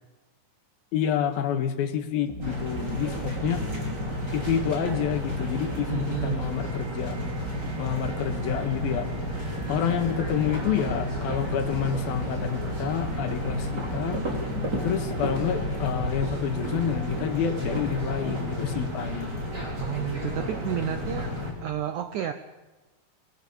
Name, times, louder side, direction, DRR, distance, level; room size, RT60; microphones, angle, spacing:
voice 1, 0.9-3.6 4.3-7.2 7.8-9.1 9.7-14.2 14.8-19.3, left 8 dB, 70° left, 7 dB, 3.2 m, -28 dB
sound 1, 2.3-15.9, right 4 dB, ahead, 4.8 m, -38 dB
sound 2, 2.4-21.5, left 1 dB, 25° right, 4.8 m, -32 dB
voice 2, 5.9-6.5 19.8-22.3, right 11 dB, 75° right, 9 dB, 1.8 m, -31 dB
27.0 x 21.0 x 7.2 m, 1.2 s
omnidirectional pair, 4.6 m